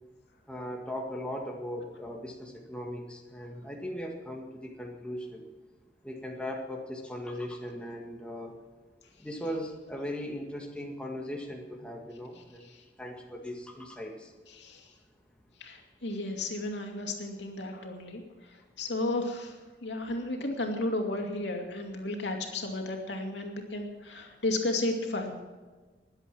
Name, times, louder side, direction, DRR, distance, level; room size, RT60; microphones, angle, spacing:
voice 1, 0.5-5.4 6.0-8.5 9.2-12.7 13.0-14.3, equal, 5° left, 0 dB, 1.9 m, -38 dB
voice 2, 12.4-12.8 14.5-14.9 15.6-25.4, left 2 dB, 85° left, 2 dB, 2.6 m, -34 dB
21.0 x 8.2 x 6.1 m, 1.3 s
head